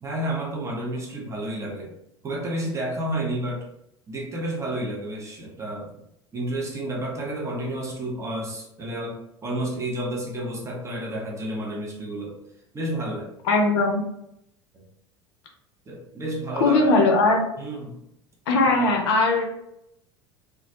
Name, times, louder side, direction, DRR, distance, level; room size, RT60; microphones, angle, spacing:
voice 1, 0.0-1.9 2.2-3.7 4.1-5.9 6.3-12.4 12.7-13.3 14.7-14.8 15.9-16.9 17.6-18.0 18.7-18.9, right 1 dB, 20° right, -2 dB, 0.7 m, -30 dB
voice 2, 13.5-14.0 16.6-17.4 18.5-19.4, left 2 dB, 55° left, 1 dB, 0.5 m, -19 dB
2.2 x 2.1 x 2.7 m, 0.78 s
figure-of-eight pair, 70°, 15 cm